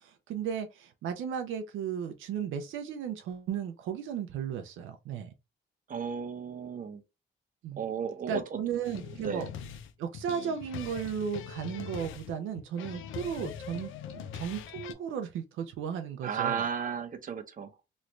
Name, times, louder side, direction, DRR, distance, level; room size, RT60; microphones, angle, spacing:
voice 1, 0.0-5.3 7.6-7.8 8.3-9.5 10.0-16.6, right 8 dB, 80° right, 0.6 m, -35 dB
voice 2, 5.9-7.0 7.8-8.6 9.1-9.5 16.2-17.7, right 7 dB, 45° right, 0.8 m, -34 dB
sound 1, 8.8-14.9, left 8 dB, 80° left, 0.5 m, -42 dB
3.1 x 2.5 x 3.1 m
cardioid pair, 90°, 20 cm